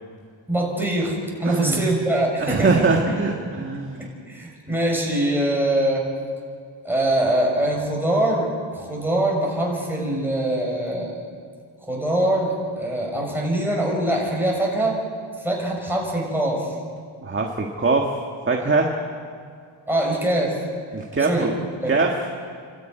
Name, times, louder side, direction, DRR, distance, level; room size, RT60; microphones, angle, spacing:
voice 1, 0.5-3.2 3.7-6.1 6.8-11.2 11.8-15.0 15.4-16.7 19.9-20.6 21.3-22.0, right 1 dB, 5° right, -2 dB, 5.9 m, -23 dB
voice 2, 1.4-1.8 2.4-4.0 17.2-18.1 18.5-18.9 20.9-21.5 21.9-22.1, right 4 dB, 25° right, 1 dB, 1.8 m, -22 dB
30.0 x 13.0 x 9.4 m, 2.1 s
wide cardioid pair, 130°, 49 cm